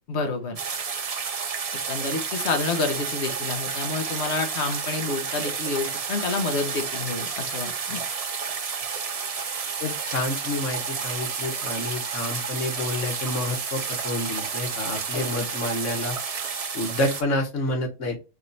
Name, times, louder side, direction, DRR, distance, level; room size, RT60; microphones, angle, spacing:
voice 1, 0.1-0.6 1.9-8.0 15.1-15.4, left 3 dB, 65° left, 5 dB, 1.3 m, -29 dB
sound 1, 0.6-17.2, right 5 dB, 40° right, 0.5 m, -31 dB
voice 2, 9.8-16.2 16.7-18.2, left 1 dB, 90° left, 2 dB, 1.6 m, -29 dB
4.7 x 3.2 x 2.6 m, 0.29 s
omnidirectional pair, 1.2 m